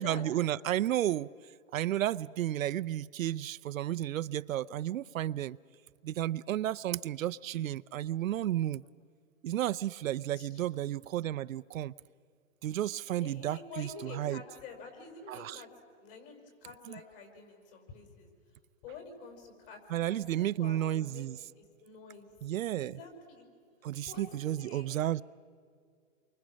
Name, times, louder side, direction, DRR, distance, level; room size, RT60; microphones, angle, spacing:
voice 1, 0.0-1.3 1.7-5.6 6.0-8.8 9.4-11.9 12.6-14.4 15.3-15.6 16.9-17.0 19.9-21.4 22.4-23.0 23.8-25.2, right 12 dB, 75° right, 0.6 m, -32 dB
voice 2, 13.2-15.7 16.0-18.3 18.8-21.3 21.6-22.3 22.8-23.5 24.1-24.9, left 5 dB, 40° left, 5.9 m, -48 dB
29.5 x 24.0 x 6.3 m
hypercardioid pair, 155°, 40 cm